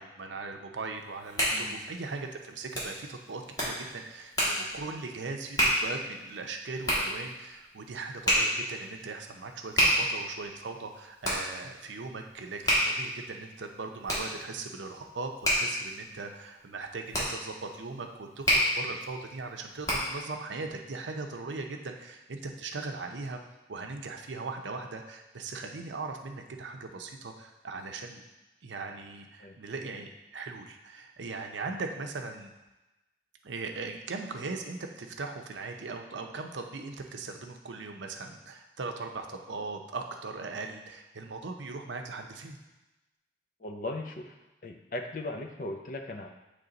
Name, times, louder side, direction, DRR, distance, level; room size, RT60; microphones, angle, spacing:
voice 1, 0.0-23.4 23.7-28.2 28.6-32.5 33.4-42.6, right 3 dB, 85° right, 4 dB, 0.6 m, -39 dB
Hands, 1.0-20.3, equal, 20° left, 1.5 m, -31 dB
voice 2, 1.5-1.8 29.4-29.6 43.6-44.4 44.6-46.3, left 2 dB, 45° left, 4 dB, 0.6 m, -38 dB
7.8 x 3.3 x 3.9 m, 1.0 s
head